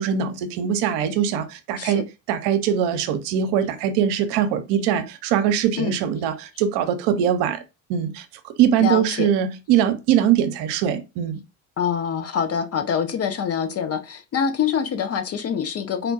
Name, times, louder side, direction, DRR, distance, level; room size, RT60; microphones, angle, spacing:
voice 1, 0.0-7.6 7.9-11.4, right 9 dB, 60° right, 0.7 m, -22 dB
voice 2, 8.8-9.3 11.8-16.1, left 7 dB, 35° left, 0.6 m, -25 dB
4.2 x 2.2 x 2.6 m
hypercardioid pair, 65°, 45 cm